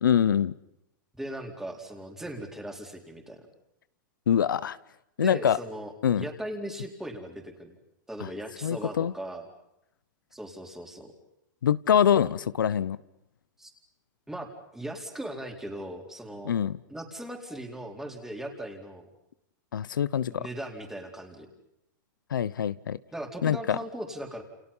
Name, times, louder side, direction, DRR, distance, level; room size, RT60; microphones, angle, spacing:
voice 1, 0.0-0.5 4.3-4.8 5.2-5.6 6.0-6.2 8.2-8.3 8.6-9.1 11.6-13.0 16.4-16.8 19.7-20.5 22.3-23.0 23.4-23.8, left 9 dB, 90° left, 17 dB, 0.9 m, -24 dB
voice 2, 1.1-3.5 5.2-7.8 8.1-9.5 10.3-11.1 13.6-13.7 14.3-14.5 14.7-16.5 16.9-19.1 20.3-21.5 23.1-24.4, right 1 dB, 5° right, 3 dB, 4.4 m, -38 dB
30.0 x 29.5 x 5.7 m, 0.84 s
hypercardioid pair, 135°, 10 cm